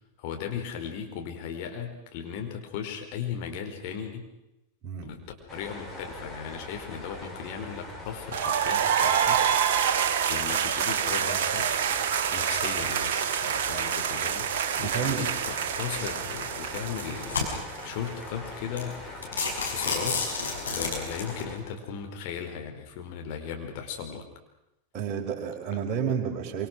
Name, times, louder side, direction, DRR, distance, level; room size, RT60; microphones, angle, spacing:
voice 1, 0.2-4.3 5.0-9.4 10.3-11.7 12.3-14.5 14.8-17.4 17.8-20.3 20.7-24.3, left 7 dB, 45° left, 3 dB, 4.8 m, -37 dB
sound 1, 5.5-21.6, left 2 dB, 15° left, 6.1 m, -42 dB
sound 2, 8.3-18.1, right 8 dB, 55° right, 1.7 m, -27 dB
voice 2, 14.8-15.2 24.9-26.7, right 7 dB, 35° right, 0 dB, 5.3 m, -30 dB
sound 3, 16.0-16.3 16.9-17.9 18.4-18.5 18.8-18.9 19.2-21.4, left 4 dB, 70° left, 6.0 m, -30 dB
26.5 x 26.0 x 6.3 m, 0.89 s
figure-of-eight pair, 90°, 0 cm